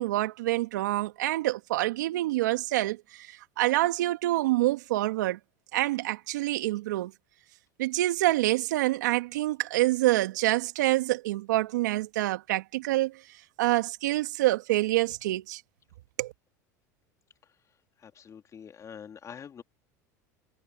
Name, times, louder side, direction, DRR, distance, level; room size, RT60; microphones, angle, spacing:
voice 1, 0.0-5.4 5.7-7.1 7.8-13.2 13.6-15.6 16.2-16.3, right 17 dB, 80° right, 2.1 m, -27 dB
voice 2, 18.0-19.6, left 7 dB, 35° left, 2.8 m, -45 dB
hypercardioid pair, 90°, 10 cm